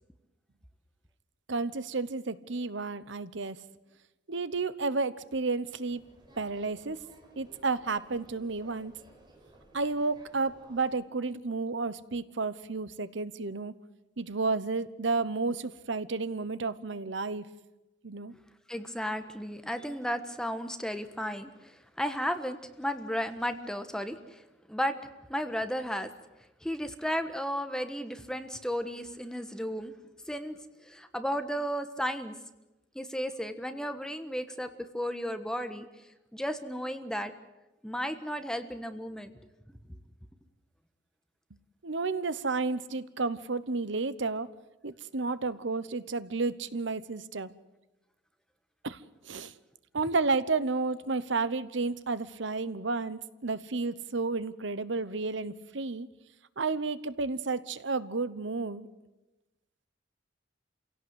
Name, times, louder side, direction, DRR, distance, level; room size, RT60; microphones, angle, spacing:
voice 1, 1.5-3.6 4.3-6.0 6.4-7.0 7.4-8.9 9.7-13.7 14.2-17.5 18.0-18.3 41.8-44.5 44.8-47.5 48.8-49.0 49.2-49.5 49.9-56.1 56.6-58.9, right 3 dB, 70° right, 15 dB, 1.0 m, -31 dB
sound 1, 5.9-11.0, right 1 dB, 25° right, 5.1 m, -57 dB
voice 2, 18.7-24.4 24.7-24.9 25.3-26.1 26.6-29.9 30.3-32.3 32.9-35.9 36.3-37.3 37.8-39.3, equal, 5° left, 8 dB, 1.3 m, -34 dB
27.5 x 17.0 x 8.2 m, 1.1 s
head